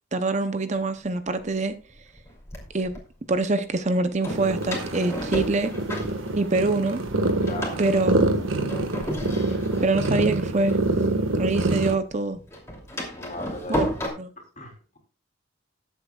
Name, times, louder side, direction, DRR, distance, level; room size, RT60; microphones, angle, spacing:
voice 1, 0.1-1.7 2.7-3.0 3.3-5.7 6.4-7.0 7.8-8.3 9.8-10.8 11.3-12.4 13.7-13.9 14.2-14.3, right 3 dB, 35° right, 0.6 m, -24 dB
Door, 1.0-1.1 1.9-3.0 4.2-6.8 7.1-11.6 11.8-14.1, equal, 15° left, 2.8 m, -33 dB
sound 1, 4.3-12.0, right 2 dB, 75° right, 1.5 m, -26 dB
voice 2, 7.4-8.2 13.2-14.1 14.6-15.0, left 1 dB, 35° left, 3.2 m, -38 dB
20.0 x 8.2 x 2.3 m
head